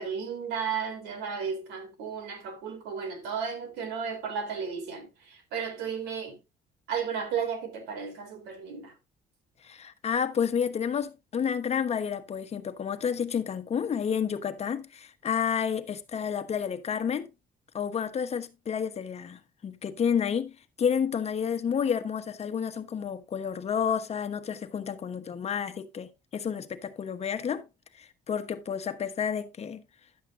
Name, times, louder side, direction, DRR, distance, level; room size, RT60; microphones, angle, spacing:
voice 1, 0.0-6.4 6.9-8.9, right 6 dB, 90° right, 3.8 m, -34 dB
voice 2, 9.6-17.3 17.7-20.5 20.8-27.6 28.0-29.8, left 7 dB, 40° left, 1.2 m, -30 dB
11.5 x 8.2 x 2.6 m
cardioid pair, 110°, 17 cm